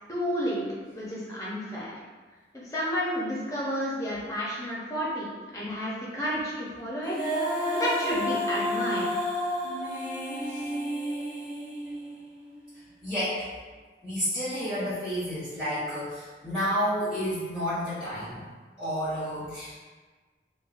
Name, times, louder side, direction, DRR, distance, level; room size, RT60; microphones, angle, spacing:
voice 1, 0.1-0.6 0.9-1.9 2.6-5.3 5.5-7.2 7.7-9.1, equal, 20° left, -6 dB, 0.7 m, -31 dB
Female singing, 7.0-12.2, equal, 20° right, 1.2 m, -30 dB
voice 2, 13.0-13.4 14.0-18.4 18.8-19.7, equal, ahead, -16 dB, 1.2 m, -30 dB
4.6 x 2.3 x 2.5 m, 1.4 s
head